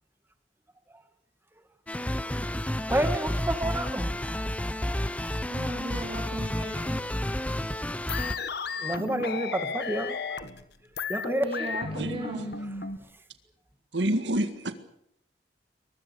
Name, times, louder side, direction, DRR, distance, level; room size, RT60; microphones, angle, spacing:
sound 1, 1.9-8.4, left 1 dB, 10° left, 0.9 m, -31 dB
voice 1, 2.6-4.1 8.8-10.2 11.1-11.5, right 1 dB, 15° right, 2.1 m, -29 dB
voice 2, 5.5-7.0 11.4-12.5, right 1 dB, 35° right, 3.8 m, -36 dB
sound 2, 8.1-13.0, left 4 dB, 65° left, 1.5 m, -34 dB
voice 3, 13.9-14.7, right 1 dB, 85° right, 1.9 m, -27 dB
23.0 x 21.5 x 7.0 m
head